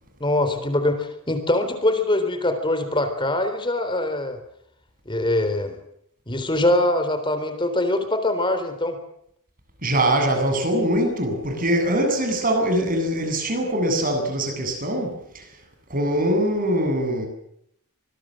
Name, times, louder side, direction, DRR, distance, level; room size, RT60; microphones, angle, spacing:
voice 1, 0.2-4.4 5.1-5.8 6.3-9.0, left 1 dB, 20° left, 8 dB, 3.8 m, -23 dB
voice 2, 9.8-15.4 15.9-17.3, right 1 dB, 40° right, 4 dB, 8.0 m, -22 dB
25.5 x 21.0 x 7.7 m, 0.72 s
head